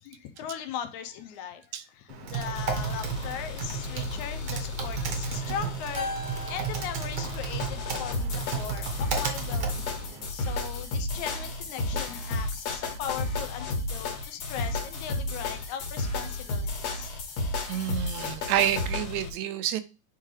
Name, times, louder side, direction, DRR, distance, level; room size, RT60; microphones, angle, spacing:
voice 1, 0.0-17.2 17.7-18.0, left 8 dB, 80° left, 9 dB, 2.0 m, -39 dB
Typing, 2.1-10.3, right 6 dB, 60° right, 1.4 m, -34 dB
sound 1, 2.5-19.3, left 3 dB, 60° left, 2.3 m, -33 dB
Keyboard (musical), 5.9-8.5, left 2 dB, 25° left, 0.5 m, -39 dB
voice 2, 17.7-19.8, right 11 dB, 80° right, 11 dB, 1.9 m, -28 dB
9.2 x 3.7 x 3.2 m, 0.31 s
omnidirectional pair, 3.5 m